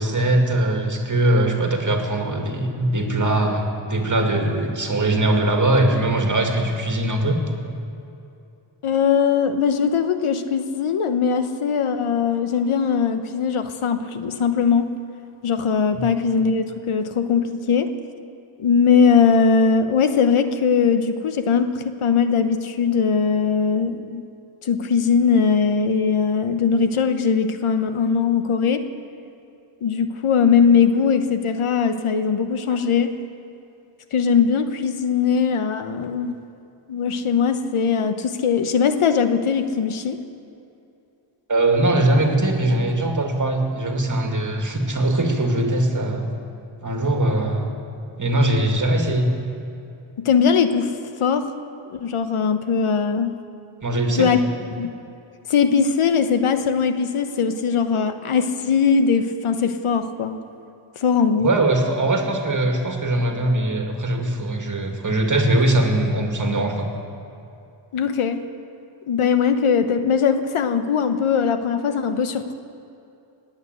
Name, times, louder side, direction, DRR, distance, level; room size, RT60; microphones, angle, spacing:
voice 1, 0.0-7.4 7.7-7.8 15.9-16.0 32.7-32.8 41.5-46.3 46.8-47.7 48.2-49.3 53.8-54.3 61.4-66.9, right 1 dB, 35° right, 2 dB, 2.3 m, -21 dB
voice 2, 8.8-14.9 15.4-17.9 18.6-24.3 24.6-28.8 29.8-33.1 34.1-36.3 36.9-40.2 50.2-50.9 51.2-51.5 51.9-53.3 54.1-54.4 54.8-54.9 55.5-60.4 61.0-61.5 67.9-68.4 69.1-72.5, left 6 dB, 80° left, 9 dB, 1.1 m, -20 dB
19.5 x 8.9 x 8.0 m, 2.7 s
wide cardioid pair, 80°, 49 cm